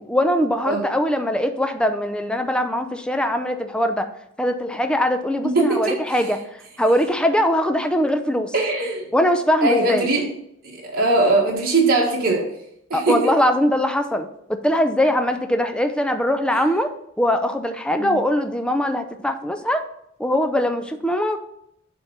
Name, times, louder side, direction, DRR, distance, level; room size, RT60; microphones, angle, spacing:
voice 1, 0.1-4.1 4.4-6.4 6.8-8.5 9.1-10.1 12.9-14.3 14.6-16.9 17.2-19.8 20.2-21.4, equal, 5° left, 7 dB, 0.5 m, -21 dB
voice 2, 5.5-6.3 8.5-9.1 9.6-10.3 10.7-12.5 12.9-13.3 17.9-18.2, right 2 dB, 50° right, -3 dB, 1.6 m, -21 dB
7.0 x 3.7 x 5.4 m, 0.74 s
head